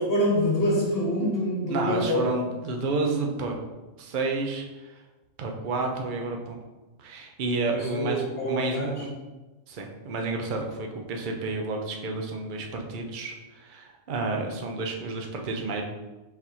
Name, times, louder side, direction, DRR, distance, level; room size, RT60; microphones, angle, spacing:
voice 1, 0.0-2.2 7.7-9.0, equal, 50° left, -4 dB, 1.4 m, -26 dB
voice 2, 1.7-3.6 4.0-5.0 5.4-6.6 7.0-9.1 9.7-15.8, right 3 dB, 50° right, 2 dB, 0.6 m, -30 dB
4.5 x 4.1 x 2.7 m, 1.1 s
omnidirectional pair, 1.4 m